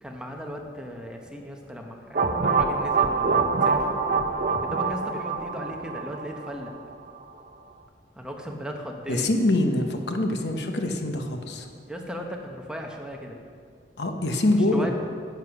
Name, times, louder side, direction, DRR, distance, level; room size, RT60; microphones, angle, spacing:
voice 1, 0.0-3.7 4.6-6.7 8.1-9.3 11.9-13.4 14.5-14.9, equal, 5° right, 1 dB, 1.0 m, -36 dB
sound 1, 2.1-6.9, right 4 dB, 50° right, 0.7 m, -25 dB
voice 2, 9.1-11.7 14.0-14.9, left 1 dB, 70° left, 4 dB, 1.0 m, -24 dB
10.0 x 8.1 x 5.9 m, 2.2 s
head